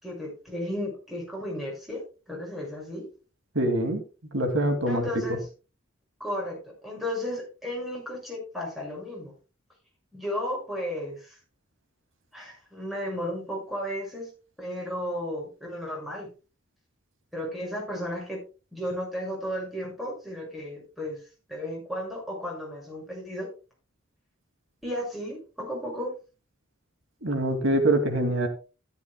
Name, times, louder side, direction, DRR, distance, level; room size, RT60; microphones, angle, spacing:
voice 1, 0.0-3.1 4.9-5.4 6.2-6.6 6.8-9.3 10.1-11.4 12.3-14.3 14.6-16.3 17.3-18.4 18.7-21.2 21.5-23.5 24.8-26.1, equal, ahead, -1 dB, 6.3 m, -34 dB
voice 2, 3.5-4.0 4.3-5.1 27.2-28.5, right 1 dB, 80° right, 6 dB, 2.6 m, -24 dB
13.5 x 13.0 x 2.3 m, 0.32 s
head